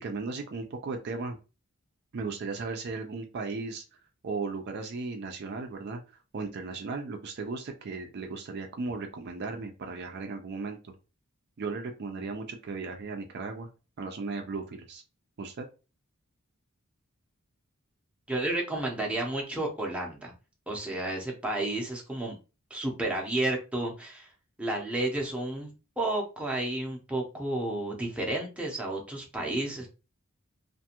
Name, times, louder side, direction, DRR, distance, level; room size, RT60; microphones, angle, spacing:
voice 1, 0.0-1.4 2.1-3.8 4.2-10.9 11.6-13.7 14.0-15.0 15.4-15.7, right 4 dB, 50° right, 4 dB, 0.4 m, -36 dB
voice 2, 18.3-20.3 20.7-22.3 22.7-24.3 24.6-29.9, right 2 dB, 5° right, -1 dB, 0.6 m, -31 dB
2.5 x 2.2 x 2.8 m, 0.31 s
head